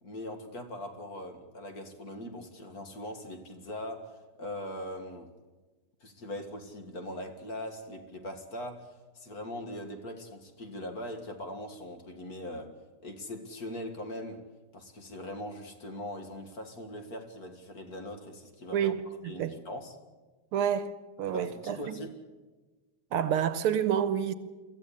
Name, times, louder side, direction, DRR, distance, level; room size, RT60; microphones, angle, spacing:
voice 1, 0.0-5.3 6.0-12.7 13.0-14.4 14.7-18.9 19.2-20.0 21.3-22.1, left 1 dB, 45° left, 2.3 m, -41 dB
voice 2, 20.5-20.9 21.2-21.8 23.1-24.3, right 9 dB, 80° right, 1.9 m, -28 dB
24.0 x 15.0 x 8.6 m
omnidirectional pair, 2.4 m